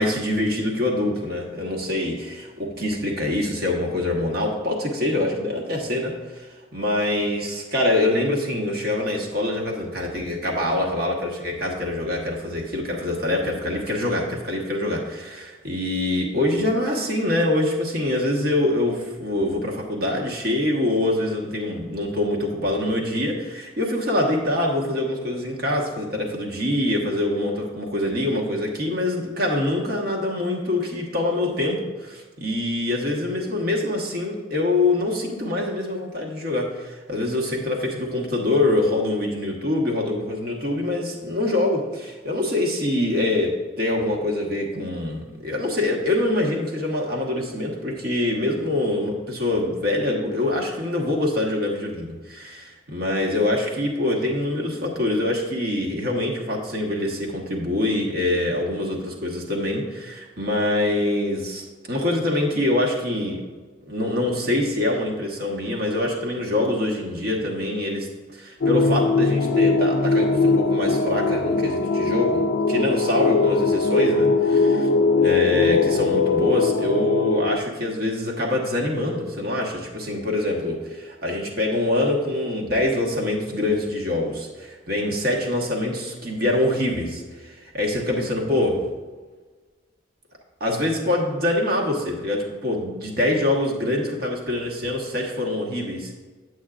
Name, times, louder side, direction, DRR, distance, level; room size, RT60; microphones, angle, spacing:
voice 1, 0.0-6.5 6.7-63.4 63.9-74.9 75.2-88.8 90.6-96.1, left 1 dB, 55° right, -1 dB, 1.3 m, -25 dB
sound 1, 68.6-77.6, left 3 dB, 60° left, 0.4 m, -20 dB
8.1 x 7.8 x 2.5 m, 1.4 s
head